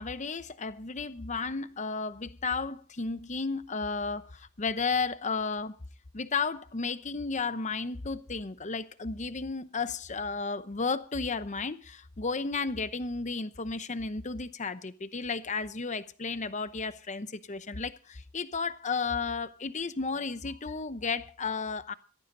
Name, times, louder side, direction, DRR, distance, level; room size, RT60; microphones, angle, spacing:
voice 1, 0.0-5.8 6.1-21.9, left 4 dB, 35° left, 0.8 m, -33 dB
17.5 x 14.0 x 3.9 m
head